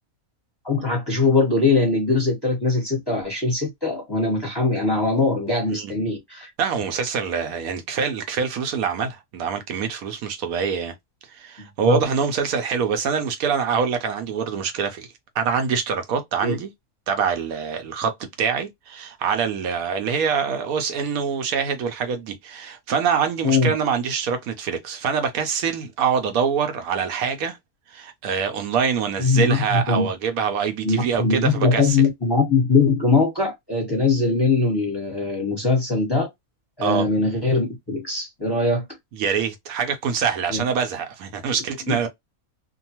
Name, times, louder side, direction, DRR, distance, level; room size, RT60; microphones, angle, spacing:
voice 1, 0.6-6.5 11.8-12.0 16.4-16.6 23.4-23.7 29.2-30.1 30.8-36.3 36.8-38.8 40.5-40.6 41.9-42.1, left 3 dB, 20° left, 0.9 m, -21 dB
voice 2, 6.6-10.9 11.3-15.1 15.4-16.7 17.1-27.6 27.9-32.0 36.8-37.0 39.1-42.1, right 6 dB, 75° right, 1.0 m, -25 dB
2.7 x 2.2 x 2.8 m
omnidirectional pair, 1.6 m